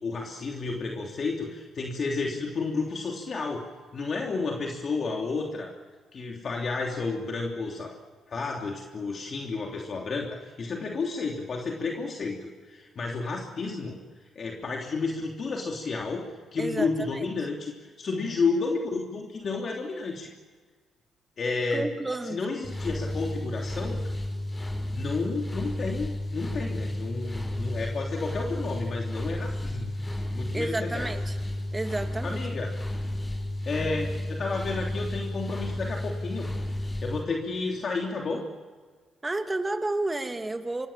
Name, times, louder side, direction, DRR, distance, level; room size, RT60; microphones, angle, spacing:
voice 1, 0.0-3.7 3.9-5.7 6.1-7.9 8.3-14.0 14.3-20.3 21.4-21.9 22.2-24.0 24.9-30.0 30.3-31.1 32.2-32.7 33.6-36.5 37.0-38.4, left 4 dB, 45° left, 0 dB, 3.2 m, -31 dB
voice 2, 16.6-17.3 21.7-22.4 30.5-31.4 31.7-32.4 39.2-40.9, right 2 dB, 20° right, 6 dB, 2.3 m, -31 dB
sound 1, 22.6-37.2, left 1 dB, 30° left, 7.1 m, -32 dB
27.5 x 25.0 x 7.4 m, 1.5 s
cardioid pair, 90°, 0 cm